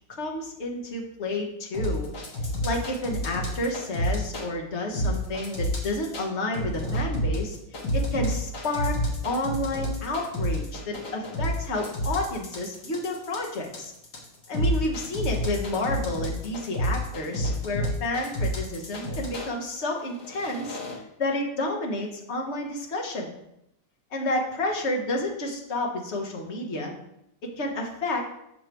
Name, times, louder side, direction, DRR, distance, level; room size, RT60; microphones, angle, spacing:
voice 1, 0.2-2.1 2.6-7.6 7.9-9.0 9.2-13.9 14.5-20.8 21.2-23.3 24.1-26.9 27.4-28.2, left 1 dB, 45° left, 0 dB, 1.1 m, -30 dB
sound 1, 1.7-4.5 4.9-6.2 6.5-19.5 20.1-20.9, equal, 65° left, 1.9 m, -29 dB
6.3 x 4.2 x 4.5 m, 0.80 s
omnidirectional pair, 2.0 m